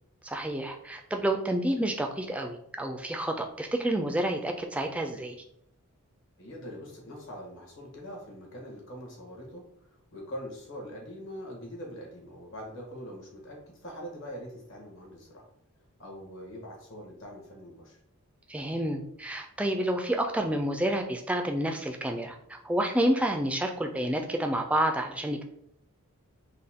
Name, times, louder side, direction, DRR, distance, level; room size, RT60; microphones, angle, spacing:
voice 1, 0.2-5.4 18.5-25.5, right 1 dB, 5° right, 4 dB, 0.3 m, -29 dB
voice 2, 6.4-15.5 16.0-18.0, equal, 60° left, -1 dB, 1.4 m, -43 dB
5.5 x 2.2 x 3.6 m, 0.75 s
head